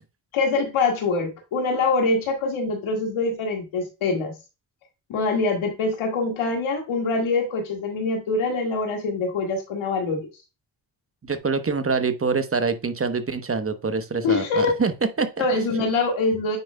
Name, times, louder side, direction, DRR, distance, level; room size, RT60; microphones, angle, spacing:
voice 1, 0.3-4.3 5.1-10.3 14.2-14.7 15.4-16.6, left 3 dB, 90° left, 1.9 m, -24 dB
voice 2, 11.2-15.4, right 4 dB, 30° right, 0.9 m, -25 dB
9.3 x 4.8 x 2.2 m
cardioid pair, 65°, 47 cm